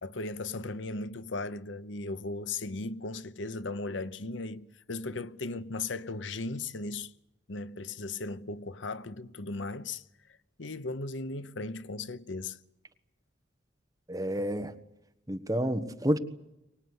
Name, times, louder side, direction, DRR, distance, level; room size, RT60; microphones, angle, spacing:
voice 1, 0.0-7.1 7.5-10.0 10.6-12.6, left 3 dB, 85° left, 0.9 m, -37 dB
voice 2, 14.1-14.7 15.3-16.2, equal, 20° right, 1.3 m, -29 dB
24.0 x 19.0 x 9.6 m
head